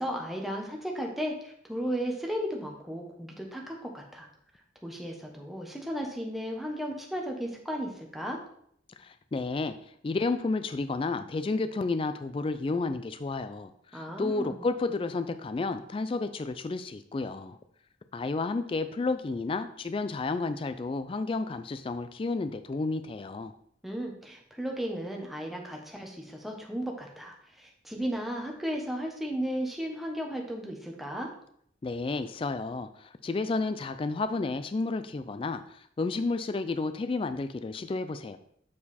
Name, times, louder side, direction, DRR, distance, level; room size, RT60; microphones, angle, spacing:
voice 1, 0.0-4.3 4.8-8.4 13.9-14.6 23.8-31.3, equal, ahead, 0 dB, 1.0 m, -35 dB
voice 2, 9.0-9.7 10.0-17.6 18.1-23.5 31.8-38.4, left 3 dB, 30° left, 10 dB, 0.3 m, -31 dB
7.3 x 4.6 x 4.2 m, 0.67 s
head